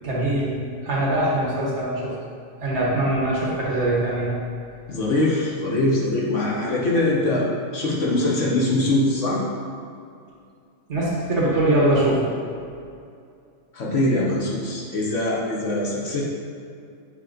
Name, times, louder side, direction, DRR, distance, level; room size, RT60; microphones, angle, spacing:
voice 1, 0.0-2.1 2.6-4.3 10.9-12.2, right 1 dB, 60° right, -5 dB, 1.6 m, -22 dB
voice 2, 4.9-9.4 13.7-16.2, left 1 dB, 65° left, -4 dB, 1.4 m, -22 dB
8.1 x 3.2 x 3.8 m, 2.4 s
omnidirectional pair, 1.4 m